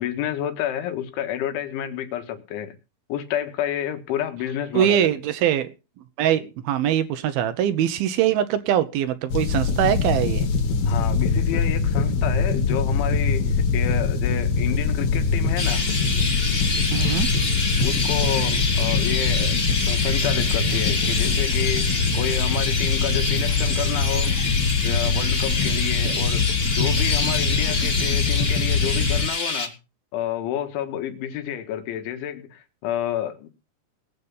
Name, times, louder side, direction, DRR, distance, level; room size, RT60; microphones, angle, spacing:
voice 1, 0.0-2.7 3.1-5.1 10.8-15.8 17.8-19.6 19.9-24.3 24.8-26.5 26.7-29.7 30.1-33.5, left 11 dB, 80° left, 4.0 m, -30 dB
voice 2, 4.7-5.7 6.2-10.5 16.9-17.3, right 10 dB, 75° right, 2.3 m, -22 dB
sound 1, 9.3-29.3, left 4 dB, 55° left, 3.3 m, -23 dB
Chirp tweet, 15.6-29.7, left 3 dB, 25° left, 1.2 m, -27 dB
19.5 x 8.2 x 5.5 m
omnidirectional pair, 5.4 m